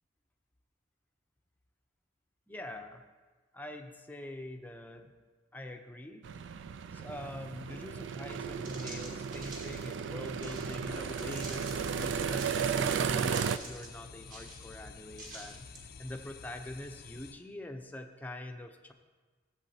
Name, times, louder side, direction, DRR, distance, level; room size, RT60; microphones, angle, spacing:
voice 1, 2.5-3.0 3.5-5.1 5.5-6.3 6.9-18.9, left 1 dB, 10° left, 4 dB, 0.6 m, -44 dB
sound 1, 6.2-13.6, right 6 dB, 65° right, 0.3 m, -34 dB
sound 2, 8.2-8.3 8.6-10.8 11.2-11.9 12.3-12.9 13.2-13.9 14.2-14.7 15.1-15.8, right 2 dB, 45° right, 1.9 m, -48 dB
sound 3, 10.9-17.3, left 5 dB, 50° left, 0.5 m, -50 dB
14.5 x 7.9 x 2.8 m, 1.4 s
head